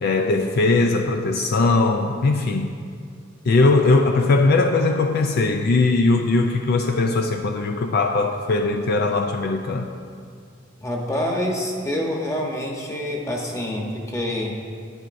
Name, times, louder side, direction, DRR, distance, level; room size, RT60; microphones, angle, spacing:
voice 1, 0.0-2.7 3.5-9.9, left 3 dB, 55° left, 4 dB, 0.4 m, -20 dB
voice 2, 10.8-14.6, left 1 dB, 15° left, 0 dB, 1.1 m, -26 dB
11.0 x 10.5 x 2.6 m, 2.2 s
head